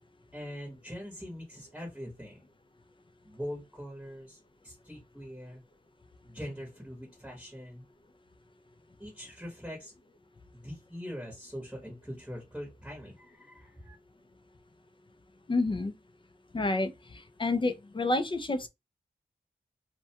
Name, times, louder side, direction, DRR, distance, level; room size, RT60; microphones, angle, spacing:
voice 1, 0.3-2.5 3.2-5.6 6.2-7.8 9.0-9.9 10.5-13.9, equal, 5° right, 0.9 m, -42 dB
voice 2, 15.5-15.9 16.5-18.7, left 2 dB, 30° left, 0.4 m, -29 dB
2.3 x 2.2 x 2.7 m
wide cardioid pair, 65°, 17 cm